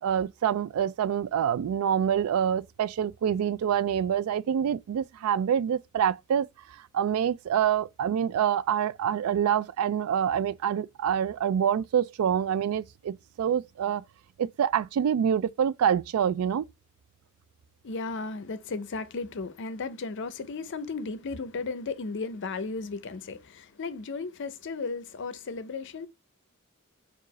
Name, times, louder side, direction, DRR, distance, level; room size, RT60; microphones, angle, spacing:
voice 1, 0.0-14.0 14.4-16.7, right 8 dB, 90° right, 0.3 m, -26 dB
voice 2, 17.8-26.1, left 4 dB, 60° left, 0.5 m, -35 dB
4.7 x 2.4 x 3.0 m
head